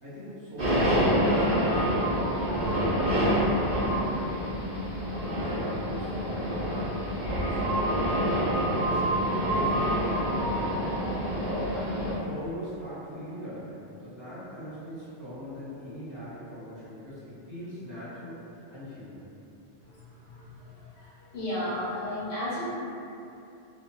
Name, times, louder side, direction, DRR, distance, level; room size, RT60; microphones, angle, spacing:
voice 1, 0.0-3.6 3.9-4.8 5.4-6.8 7.2-8.4 8.7-10.5 11.4-18.4 18.7-19.2, equal, 20° right, -13 dB, 0.9 m, -40 dB
sound 1, 0.6-12.1, equal, 80° right, 1.3 m, -27 dB
voice 2, 21.3-22.6, left 1 dB, 65° left, -12 dB, 1.0 m, -32 dB
2.7 x 2.6 x 2.3 m, 2.7 s
omnidirectional pair, 1.1 m